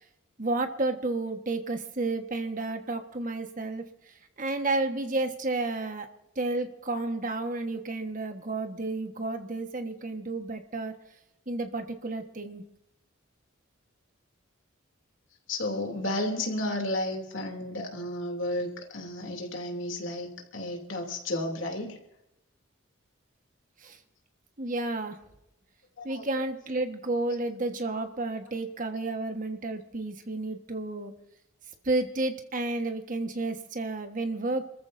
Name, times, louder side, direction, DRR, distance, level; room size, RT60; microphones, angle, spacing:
voice 1, 0.4-3.8 4.4-6.1 6.3-10.9 11.5-12.6 23.8-24.0 24.6-25.2 26.0-31.1 31.8-34.7, right 2 dB, 40° right, 6 dB, 1.4 m, -31 dB
voice 2, 15.5-22.0 26.0-26.3, left 1 dB, 65° left, 2 dB, 2.9 m, -32 dB
28.0 x 14.5 x 2.7 m, 0.87 s
head